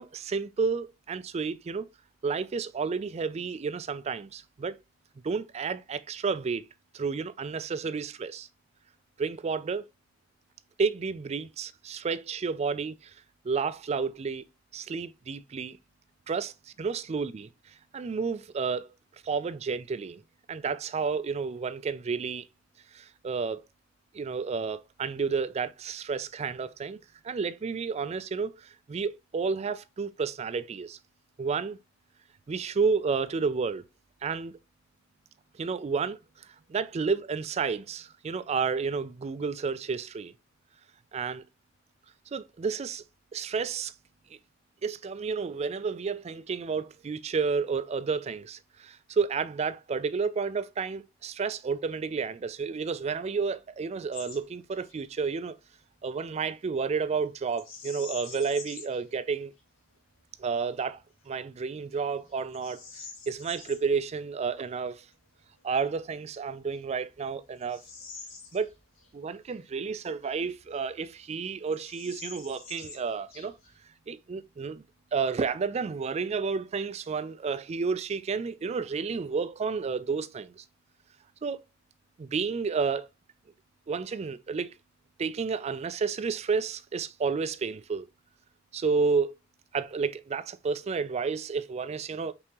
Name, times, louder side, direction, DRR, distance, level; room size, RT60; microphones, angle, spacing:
voice 1, 0.0-1.9 2.2-4.8 5.2-6.6 6.9-8.5 9.2-9.8 10.8-12.9 13.4-14.5 14.7-15.8 16.3-16.5 16.8-17.4 17.9-18.9 19.2-20.2 20.5-22.4 22.9-23.6 24.1-27.0 27.2-31.0 31.4-31.8 32.5-33.8 34.2-34.5 35.5-36.2 36.7-40.3 41.1-41.5 42.3-43.0 43.3-43.9 44.8-55.6 56.0-59.5 60.4-62.8 63.3-65.0 65.6-67.8 68.5-68.7 69.1-73.6 74.1-74.8 75.1-80.6 81.4-81.6 82.2-83.1 83.9-84.7 85.2-88.1 88.7-89.4 89.7-92.3, right 5 dB, 35° right, 0.3 m, -31 dB
Bird vocalization bird call bird song, 54.1-54.4 54.7-55.0 57.5-59.0 59.6-59.7 60.3-60.7 61.3-61.4 61.9-63.8 65.9-66.0 66.7-69.1 69.4-69.5 70.2-71.0 71.3-71.4 71.7-73.8, left 4 dB, 90° left, 2.0 m, -46 dB
5.3 x 2.8 x 2.9 m
head